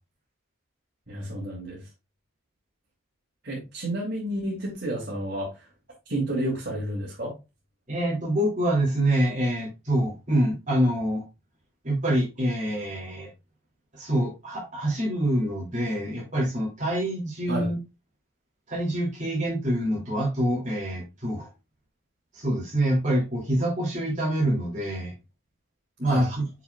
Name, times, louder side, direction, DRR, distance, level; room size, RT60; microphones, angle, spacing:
voice 1, 1.1-1.8 3.4-5.5 6.1-7.3 17.5-17.7 26.0-26.3, right 1 dB, 55° right, -6 dB, 2.7 m, -30 dB
voice 2, 7.9-11.2 11.8-13.3 13.9-17.8 18.7-21.5 22.3-25.1 26.0-26.4, right 1 dB, 35° right, -3 dB, 2.6 m, -26 dB
6.9 x 6.2 x 2.3 m, 0.25 s
head